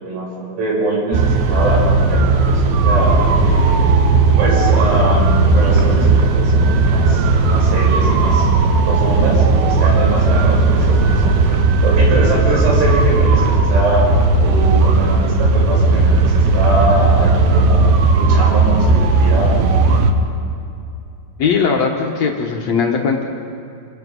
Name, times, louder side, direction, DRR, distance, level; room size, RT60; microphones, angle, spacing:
voice 1, 0.0-3.9 4.4-8.5 8.8-11.4 11.8-14.1 14.4-17.9 18.2-19.7, right 1 dB, 80° right, -4 dB, 9.1 m, -22 dB
sound 1, 1.1-20.1, right 3 dB, 65° right, 2.8 m, -14 dB
voice 2, 21.4-23.2, left 5 dB, 80° left, 0 dB, 1.5 m, -18 dB
29.0 x 19.5 x 5.5 m, 2.5 s
omnidirectional pair, 5.4 m